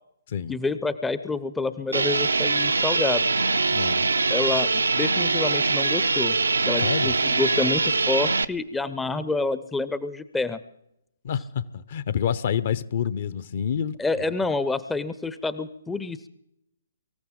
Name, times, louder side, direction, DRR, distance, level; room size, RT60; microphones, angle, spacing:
voice 1, 0.5-3.3 4.3-6.4 6.6-10.6 14.0-16.3, left 3 dB, 5° left, 0.6 m, -28 dB
sound 1, 1.9-8.5, right 3 dB, 75° right, 0.5 m, -23 dB
voice 2, 3.7-4.0 6.8-7.1 11.2-14.0, left 8 dB, 45° left, 0.7 m, -27 dB
24.0 x 14.5 x 3.8 m
figure-of-eight pair, 130°, 0 cm